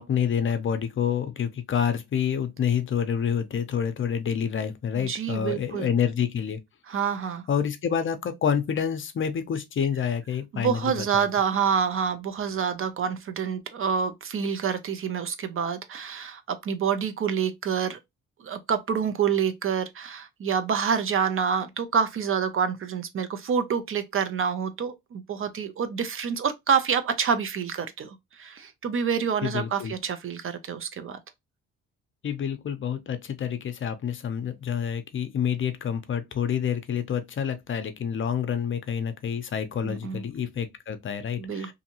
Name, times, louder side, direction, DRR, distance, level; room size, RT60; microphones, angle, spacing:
voice 1, 0.0-6.6 7.5-11.3 29.4-29.9 32.2-41.7, left 8 dB, 40° left, 0.5 m, -28 dB
voice 2, 4.9-5.9 6.9-7.4 10.5-18.0 18.4-31.2 39.8-40.2 41.4-41.7, right 7 dB, 45° right, 0.5 m, -27 dB
2.6 x 2.5 x 2.8 m
cardioid pair, 90°, 30 cm